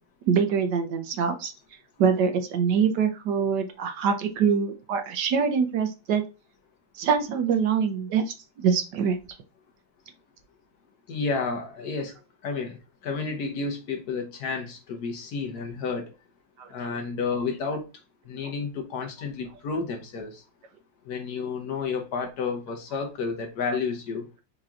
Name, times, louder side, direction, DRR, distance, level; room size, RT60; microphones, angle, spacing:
voice 1, 0.3-1.5 2.0-6.2 6.9-9.2 16.6-16.7, right 6 dB, 70° right, 1.2 m, -24 dB
voice 2, 11.1-12.1 12.4-12.8 13.0-16.1 16.7-17.9 18.3-20.4 21.1-24.3, left 4 dB, 60° left, 1.3 m, -31 dB
4.8 x 2.9 x 3.6 m
omnidirectional pair, 2.1 m